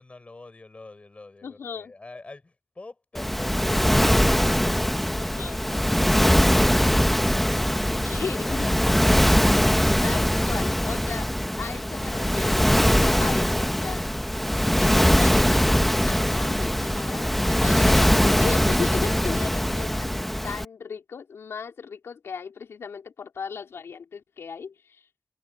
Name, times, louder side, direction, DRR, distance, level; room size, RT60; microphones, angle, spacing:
voice 1, 0.0-4.3 8.3-9.5, left 3 dB, 30° left, 5.2 m, -46 dB
voice 2, 1.4-1.9 5.2-5.6 7.9-8.7 10.0-11.3 11.6-14.1 14.8-15.7 16.1-20.1 20.4-25.0, left 6 dB, 80° left, 3.9 m, -36 dB
Waves surf, 3.1-20.6, equal, 5° left, 0.9 m, -21 dB
wide cardioid pair, 100°, 4 cm